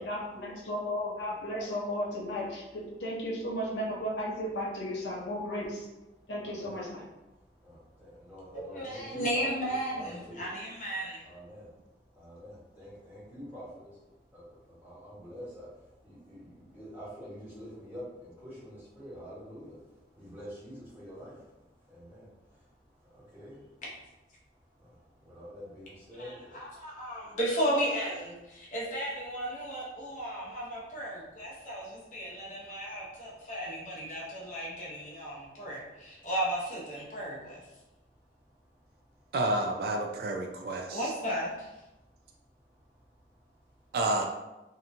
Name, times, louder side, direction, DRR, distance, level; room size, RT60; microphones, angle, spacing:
voice 1, 0.0-5.9 6.3-7.0, equal, 80° left, -2 dB, 0.6 m, -34 dB
voice 2, 6.1-6.8 7.3-10.5 11.2-23.8 24.4-27.4 28.6-28.7 30.1-30.2 30.9-31.0 31.5-33.5 34.1-34.5 35.1-35.8 36.2-36.3 37.1-37.2 37.7-39.3 41.9-43.9, equal, 10° right, -10 dB, 1.1 m, -49 dB
voice 3, 8.5-11.2 26.2-37.6 40.9-41.7, equal, 45° left, -5 dB, 0.7 m, -34 dB
voice 4, 39.3-41.1 43.9-44.2, right 2 dB, 60° right, 2 dB, 0.3 m, -30 dB
2.8 x 2.2 x 2.5 m, 1.0 s
head